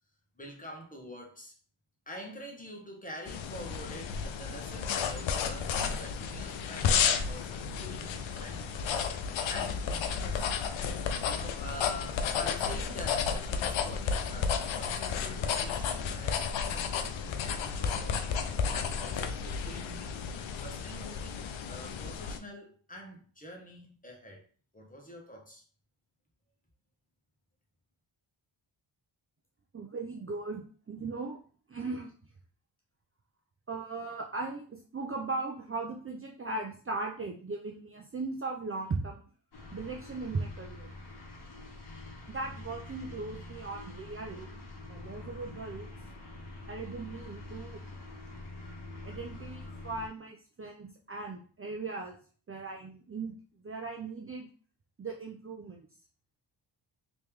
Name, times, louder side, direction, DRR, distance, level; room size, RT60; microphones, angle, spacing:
voice 1, 0.4-1.5 2.1-8.9 9.5-10.5 11.2-18.3 18.7-20.3 20.5-24.5 24.7-25.6, equal, 15° left, 1.3 m, -46 dB
sound 1, 3.3-22.4, left 6 dB, 65° left, 0.6 m, -32 dB
voice 2, 29.7-31.4 31.7-32.1 33.7-39.2 39.7-40.9 42.3-45.9 46.7-47.8 49.0-52.2 52.5-53.4 53.6-54.5 55.0-55.9, right 3 dB, 25° right, 0.6 m, -38 dB
sound 2, 39.5-50.1, left 2 dB, 50° left, 1.2 m, -45 dB
3.0 x 3.0 x 3.5 m
supercardioid pair, 55°, 49 cm